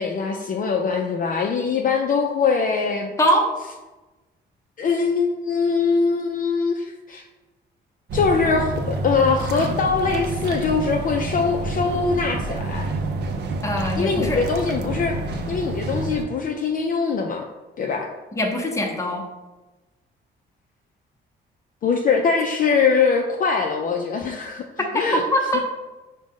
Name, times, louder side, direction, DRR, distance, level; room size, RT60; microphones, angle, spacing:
voice 1, 0.0-3.1 4.8-7.2 8.1-12.9 14.0-17.4 17.8-18.1 21.8-24.7 24.9-25.2, left 5 dB, 45° left, 2 dB, 0.4 m, -22 dB
voice 2, 3.2-3.5 13.6-14.4 18.3-19.3 25.1-25.7, equal, 15° left, 1 dB, 0.7 m, -22 dB
sound 1, 8.1-16.2, right 2 dB, 60° right, 0.5 m, -28 dB
4.8 x 2.1 x 3.6 m, 1.1 s
cardioid pair, 90°, 20 cm